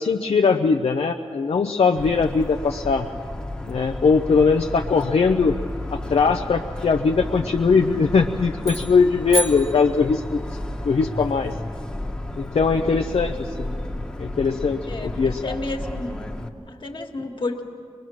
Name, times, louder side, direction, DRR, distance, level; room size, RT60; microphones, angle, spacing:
voice 1, 0.0-3.1 3.7-5.6 5.9-10.4 10.8-11.5 12.4-13.7 14.2-15.6, left 5 dB, 75° left, 3 dB, 0.6 m, -20 dB
Motor vehicle (road) / Siren, 2.0-16.5, left 1 dB, 10° left, 1.2 m, -33 dB
sound 1, 8.6-10.5, right 2 dB, 80° right, 2.2 m, -31 dB
voice 2, 12.8-13.3 14.9-16.2 16.7-17.6, left 2 dB, 55° left, 3 dB, 1.7 m, -32 dB
23.5 x 21.5 x 6.3 m, 2.3 s
wide cardioid pair, 100°, 10 cm